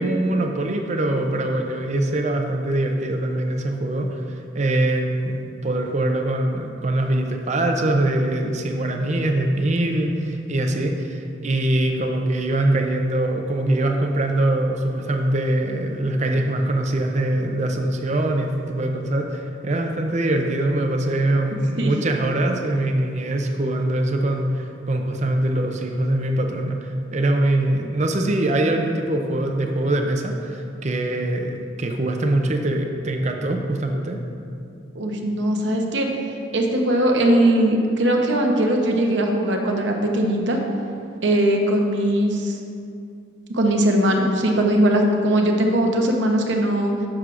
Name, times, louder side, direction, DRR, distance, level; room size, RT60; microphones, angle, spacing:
voice 1, 0.0-34.2, right 1 dB, 35° right, 3 dB, 0.5 m, -23 dB
voice 2, 34.9-36.1 36.5-40.6 41.2-42.6 43.5-46.9, right 1 dB, 65° right, 2 dB, 0.8 m, -20 dB
10.5 x 6.3 x 2.5 m, 2.5 s
head